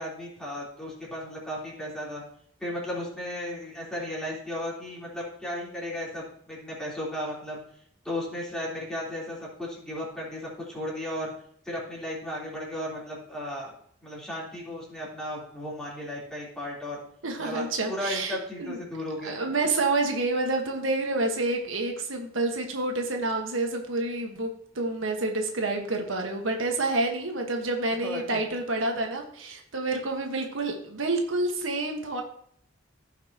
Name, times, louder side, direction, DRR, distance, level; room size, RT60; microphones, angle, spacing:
voice 1, 0.0-2.2 2.6-7.6 8.0-11.3 11.6-13.7 14.0-17.0 17.4-19.4 28.0-28.4, left 1 dB, 5° left, -6 dB, 3.6 m, -35 dB
voice 2, 17.2-18.8 19.2-32.2, right 2 dB, 85° right, 3 dB, 1.5 m, -28 dB
15.5 x 5.8 x 2.9 m, 0.64 s
head